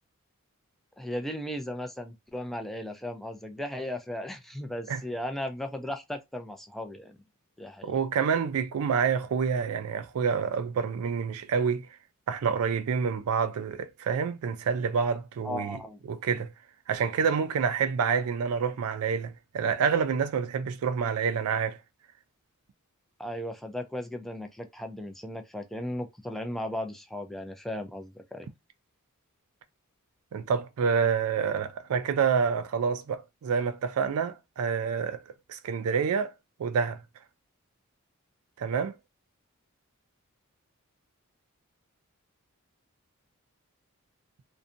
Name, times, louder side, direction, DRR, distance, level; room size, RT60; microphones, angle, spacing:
voice 1, 1.0-7.2 7.6-7.9 15.4-16.0 23.2-28.5, left 1 dB, ahead, 0.3 m, -36 dB
voice 2, 7.8-11.9 12.3-15.8 16.1-16.5 16.9-21.8 30.3-35.2 35.5-36.3 36.6-37.0 38.6-38.9, right 6 dB, 75° right, 0.4 m, -27 dB
2.6 x 2.1 x 2.5 m
head